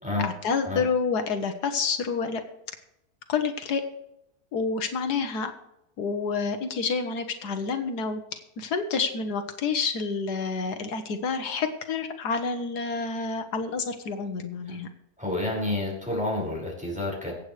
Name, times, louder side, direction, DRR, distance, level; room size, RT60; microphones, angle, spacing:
voice 1, 0.2-2.4 3.3-3.8 4.5-5.5 6.0-14.9, left 5 dB, 85° left, 7 dB, 1.7 m, -28 dB
voice 2, 15.2-17.3, left 2 dB, 5° right, -4 dB, 5.5 m, -29 dB
24.5 x 8.5 x 3.3 m, 0.84 s
omnidirectional pair, 1.7 m